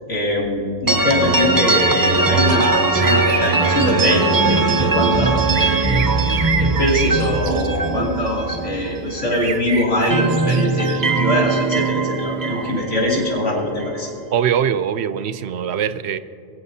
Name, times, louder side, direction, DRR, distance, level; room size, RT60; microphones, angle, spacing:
voice 1, 0.1-14.1, left 1 dB, 80° left, -4 dB, 3.2 m, -22 dB
sound 1, 0.9-9.6 9.9-14.0, right 3 dB, 20° right, 0.6 m, -20 dB
sound 2, 2.2-2.7 3.0-4.1 5.0-7.9 9.3-11.9, right 6 dB, 85° right, 1.2 m, -29 dB
voice 2, 14.3-16.2, right 8 dB, 65° right, 13 dB, 0.8 m, -21 dB
22.5 x 16.0 x 2.8 m, 2.6 s
omnidirectional pair, 1.2 m